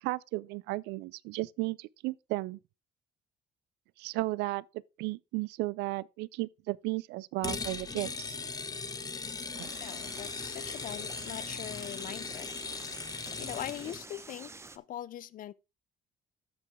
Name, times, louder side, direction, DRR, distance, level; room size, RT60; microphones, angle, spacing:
voice 1, 0.0-2.6 4.0-4.6 5.0-8.3 9.6-9.7, right 21 dB, 90° right, 0.4 m, -34 dB
sound 1, 7.4-14.0, left 4 dB, 20° left, 0.9 m, -39 dB
sound 2, 9.6-14.8, right 3 dB, 15° right, 0.8 m, -49 dB
voice 2, 9.8-12.5 13.4-15.5, left 12 dB, 55° left, 0.6 m, -42 dB
13.5 x 5.3 x 3.5 m
cardioid pair, 110°, 17 cm